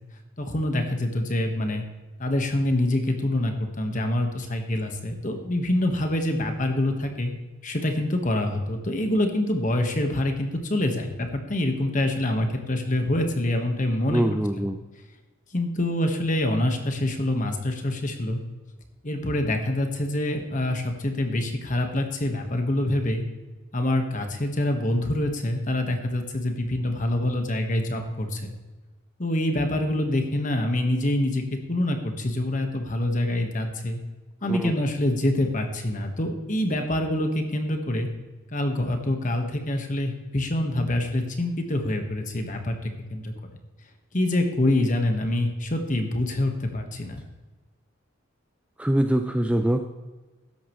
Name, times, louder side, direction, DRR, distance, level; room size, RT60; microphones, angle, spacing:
voice 1, 0.4-1.8 2.2-7.3 7.6-14.2 14.5-14.7 15.5-18.4 19.0-23.2 23.7-28.5 29.2-34.0 34.4-38.1 38.5-43.3 44.1-47.2, left 1 dB, 40° left, 5 dB, 1.3 m, -26 dB
voice 2, 14.1-14.8 34.4-34.7 48.8-49.8, right 1 dB, 5° right, 6 dB, 0.4 m, -23 dB
13.0 x 9.9 x 3.1 m, 1.2 s
head